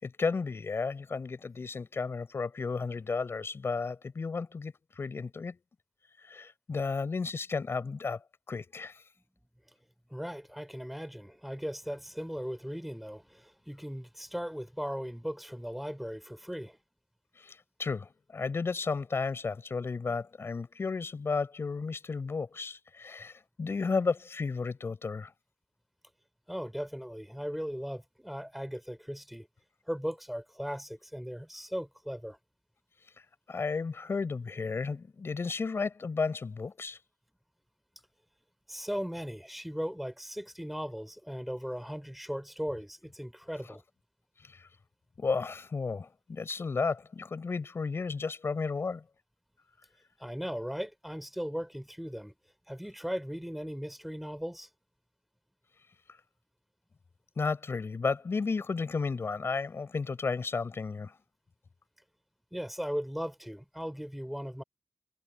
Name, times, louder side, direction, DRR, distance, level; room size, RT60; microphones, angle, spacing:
voice 1, 0.0-5.6 6.2-8.2 8.5-9.0 17.4-25.3 33.5-37.0 44.5-44.7 45.2-49.0 57.4-61.1, left 4 dB, 55° left, 5.3 m, -33 dB
voice 2, 10.1-16.8 26.5-29.5 29.9-32.4 38.7-43.8 50.2-52.3 52.7-54.7 62.5-64.6, equal, 5° right, 3.5 m, -38 dB
wide cardioid pair, 100°, 5 cm